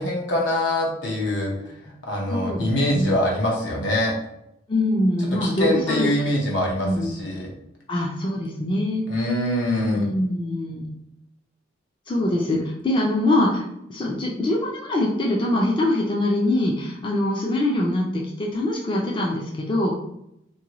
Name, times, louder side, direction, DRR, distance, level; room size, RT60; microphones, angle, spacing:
voice 1, 0.0-1.5 1.8-4.1 5.4-7.5 9.1-10.1, left 1 dB, 70° left, -2 dB, 0.9 m, -24 dB
voice 2, 2.3-3.2 4.7-6.1 6.8-7.2 7.9-9.0 9.9-10.9 12.1-19.9, left 1 dB, 25° left, -2 dB, 0.4 m, -23 dB
2.7 x 2.6 x 2.9 m, 0.80 s
head